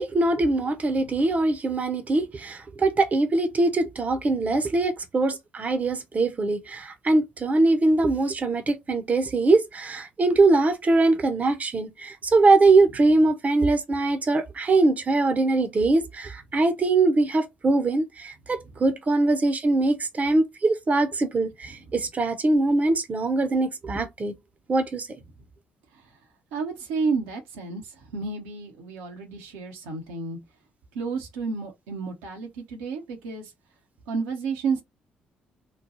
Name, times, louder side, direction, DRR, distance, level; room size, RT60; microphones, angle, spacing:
voice 1, 0.0-24.3 24.7-25.1, right 2 dB, 35° right, 0.8 m, -22 dB
voice 2, 26.5-30.4 30.9-33.5 34.1-34.8, right 4 dB, 75° right, 0.9 m, -31 dB
3.1 x 2.2 x 3.9 m
hypercardioid pair, 45°, 4 cm